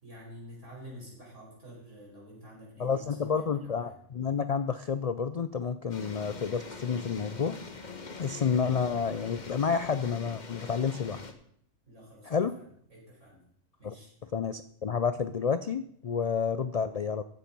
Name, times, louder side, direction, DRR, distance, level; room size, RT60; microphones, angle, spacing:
voice 1, 0.0-3.9 11.9-12.6 12.9-13.5 13.8-14.1, equal, 75° right, -3 dB, 5.3 m, -49 dB
voice 2, 2.8-7.6 8.2-11.2 12.3-12.6 13.8-13.9 14.3-17.2, left 6 dB, 60° left, 12 dB, 0.4 m, -30 dB
sound 1, 5.9-11.3, left 4 dB, 40° left, 1.2 m, -43 dB
15.5 x 7.3 x 5.3 m, 0.66 s
omnidirectional pair, 1.3 m